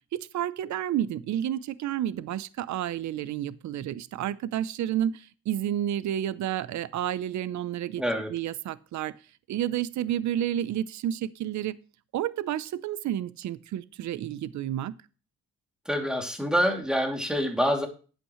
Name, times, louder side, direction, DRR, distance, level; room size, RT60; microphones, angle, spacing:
voice 1, 0.1-8.0 8.3-9.1 9.5-11.8 12.1-14.9, right 11 dB, 70° right, 16 dB, 0.7 m, -30 dB
voice 2, 8.0-8.3 15.9-17.9, equal, ahead, 2 dB, 2.6 m, -26 dB
11.5 x 8.4 x 3.1 m, 0.36 s
cardioid pair, 90°, 30 cm